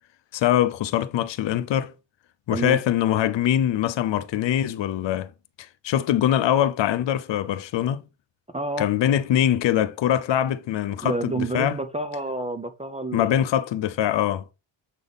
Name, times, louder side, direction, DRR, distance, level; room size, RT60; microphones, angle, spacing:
voice 1, 0.3-1.9 2.5-5.3 5.8-8.0 8.8-11.8 13.1-14.4, left 11 dB, 65° left, 0.6 m, -23 dB
voice 2, 8.5-8.9 11.0-13.4, right 2 dB, 15° right, 0.4 m, -29 dB
7.4 x 4.0 x 3.4 m
wide cardioid pair, 170°, 48 cm